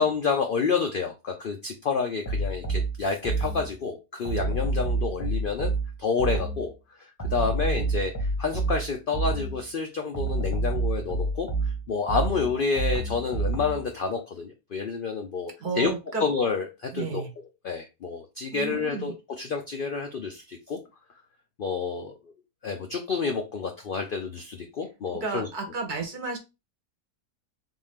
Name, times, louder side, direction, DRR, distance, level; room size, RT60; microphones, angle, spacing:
voice 1, 0.0-5.7 6.0-6.7 7.0-11.5 11.9-15.9 16.2-17.2 17.6-20.8 21.6-22.1 22.6-25.5, left 5 dB, 80° left, 4 dB, 0.4 m, -29 dB
sound 1, 2.2-3.8 4.2-6.7 7.2-9.7 10.1-13.9, right 3 dB, 15° left, 0.7 m, -28 dB
voice 2, 15.6-16.3 16.9-17.3 18.5-19.1 25.2-26.4, right 4 dB, 40° right, 3 dB, 0.7 m, -32 dB
3.7 x 2.6 x 3.4 m, 0.26 s
omnidirectional pair, 1.6 m